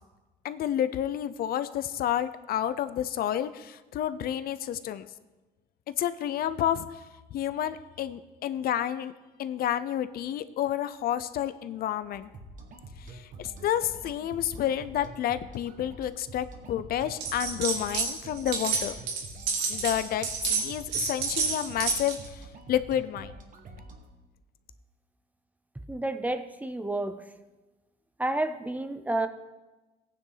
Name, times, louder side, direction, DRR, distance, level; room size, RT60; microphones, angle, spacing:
voice 1, 0.4-5.1 6.0-6.9 7.3-9.1 9.4-12.3 13.1-18.9 19.7-23.3, left 11 dB, 60° left, 13 dB, 0.6 m, -30 dB
sound 1, 12.1-24.1, right 2 dB, 50° right, 1.8 m, -47 dB
sound 2, 17.2-18.1 18.4-22.3, right 5 dB, 90° right, 2.3 m, -29 dB
voice 2, 25.9-27.2 28.2-29.3, right 2 dB, 10° right, 9 dB, 0.8 m, -30 dB
15.5 x 9.4 x 4.0 m, 1.2 s
cardioid pair, 110°, 17 cm